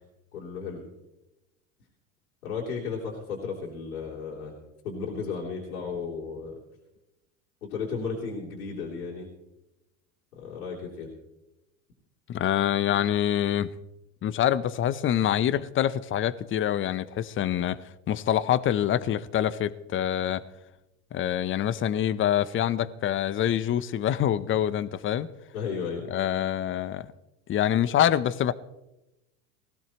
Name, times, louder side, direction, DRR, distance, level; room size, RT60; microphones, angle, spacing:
voice 1, 0.3-0.8 2.4-4.5 4.8-6.5 7.6-9.3 10.3-11.1 25.5-26.1, left 5 dB, 85° left, 3.3 m, -34 dB
voice 2, 12.3-13.7 14.2-20.4 21.1-25.3 26.1-27.1 27.5-28.5, left 11 dB, 30° left, 0.7 m, -26 dB
20.0 x 15.5 x 3.0 m
hypercardioid pair, 95°, 43 cm